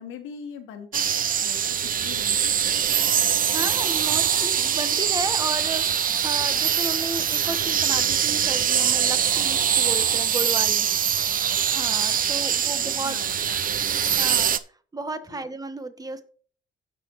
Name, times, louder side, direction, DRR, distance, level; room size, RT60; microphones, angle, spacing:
voice 1, 0.0-2.6 10.8-11.0 11.5-11.8 12.5-14.5 15.3-15.5, left 7 dB, 90° left, 5 dB, 1.5 m, -43 dB
sound 1, 0.9-14.6, right 8 dB, 45° right, 0.6 m, -23 dB
voice 2, 3.5-5.8 6.2-10.9 11.7-13.2 14.2-14.5 14.9-16.2, right 2 dB, 20° right, 9 dB, 1.3 m, -33 dB
16.5 x 6.1 x 3.1 m, 0.44 s
cardioid pair, 90°, 20 cm